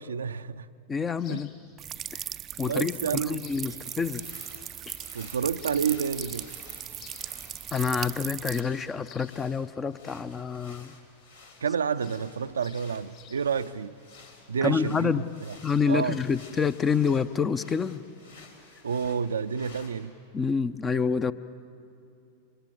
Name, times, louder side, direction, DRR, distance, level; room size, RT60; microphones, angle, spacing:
voice 1, 0.0-0.7 1.3-1.4 2.6-3.8 5.1-6.5 11.6-13.9 14.5-15.5 15.9-16.2 18.8-20.1, right 6 dB, 70° right, 0.6 m, -29 dB
voice 2, 0.9-1.5 2.1-2.2 2.6-4.2 4.9-5.0 7.7-11.0 14.6-15.3 15.6-18.0 20.3-21.3, left 6 dB, 20° left, 0.7 m, -27 dB
sound 1, 1.1-17.1, left 9 dB, 45° left, 3.6 m, -56 dB
sound 2, 1.8-8.6, right 10 dB, 30° right, 0.5 m, -38 dB
sound 3, 3.8-20.1, left 3 dB, 75° left, 4.0 m, -53 dB
29.5 x 25.5 x 7.8 m
figure-of-eight pair, 90°, 0 cm